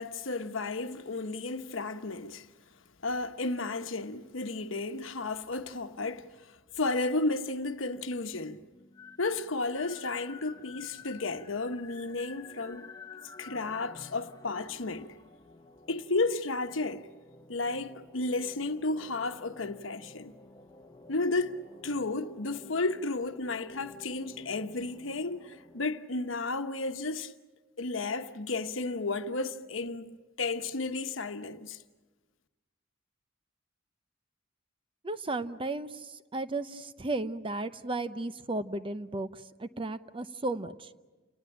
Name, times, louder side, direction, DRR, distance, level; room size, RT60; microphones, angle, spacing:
voice 1, 0.0-2.5 3.0-8.6 9.2-12.9 13.4-15.1 15.9-17.1 17.5-20.3 21.1-27.3 27.8-31.8, left 3 dB, 80° left, 1.1 m, -33 dB
sound 1, 8.7-25.8, left 3 dB, 20° left, 1.1 m, -52 dB
voice 2, 35.0-35.9 36.3-40.9, right 2 dB, 25° right, 0.8 m, -34 dB
29.5 x 19.0 x 8.9 m
head